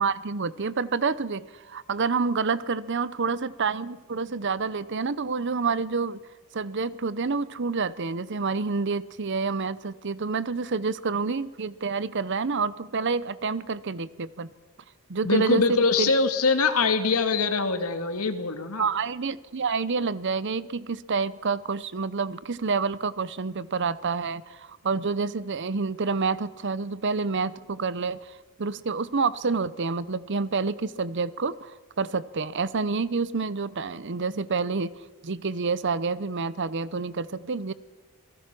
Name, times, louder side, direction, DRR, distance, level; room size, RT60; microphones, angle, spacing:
voice 1, 0.0-6.2 6.5-14.5 15.1-16.1 18.8-31.7 32.0-34.9 35.2-37.7, right 4 dB, 55° right, 18 dB, 0.7 m, -28 dB
voice 2, 15.2-18.9, left 4 dB, 85° left, 8 dB, 2.1 m, -23 dB
27.0 x 18.5 x 6.1 m, 1.2 s
head